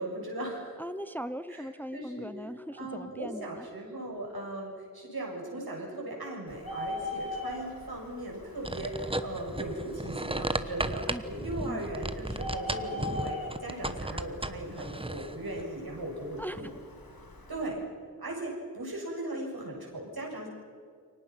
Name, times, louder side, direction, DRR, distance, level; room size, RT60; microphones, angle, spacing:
voice 1, 0.0-0.8 1.5-2.3 2.8-16.7 17.5-17.8 18.2-20.5, right 1 dB, 75° right, -2 dB, 7.7 m, -38 dB
voice 2, 0.8-3.7 11.1-11.2 11.6-11.8 16.4-16.7, equal, 5° left, 12 dB, 0.8 m, -39 dB
Bird, 6.5-17.7, left 1 dB, 70° left, 2.8 m, -42 dB
sound 1, 8.6-15.6, right 1 dB, 15° right, 1.1 m, -35 dB
28.5 x 24.5 x 6.0 m, 2.1 s
wide cardioid pair, 70°, 37 cm